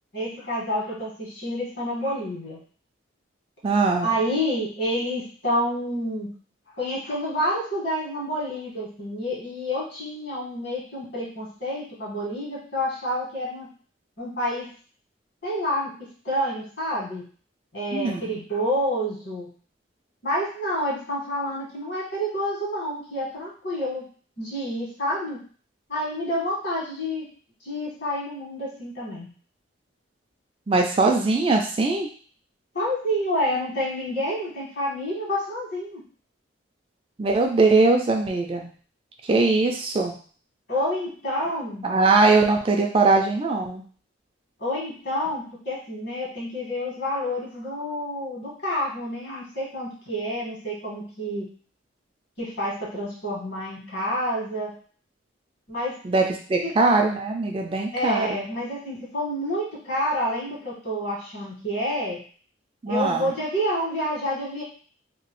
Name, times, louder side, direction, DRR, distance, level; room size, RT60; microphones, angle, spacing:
voice 1, 0.1-2.6 4.0-6.3 6.8-13.7 14.2-14.7 15.4-15.9 16.2-17.2 17.7-19.5 20.2-24.0 24.4-25.4 25.9-27.3 27.6-29.3 32.7-36.0 40.7-41.9 44.6-51.5 52.4-54.7 55.7-55.9 56.6-56.7 57.9-62.2 62.8-64.6, equal, 60° left, -6 dB, 1.6 m, -28 dB
voice 2, 3.6-4.1 17.9-18.2 30.7-32.1 37.2-38.7 39.3-40.1 41.8-43.8 56.0-58.4 62.8-63.3, right 3 dB, 30° right, 2 dB, 0.3 m, -21 dB
2.9 x 2.7 x 3.0 m, 0.43 s
head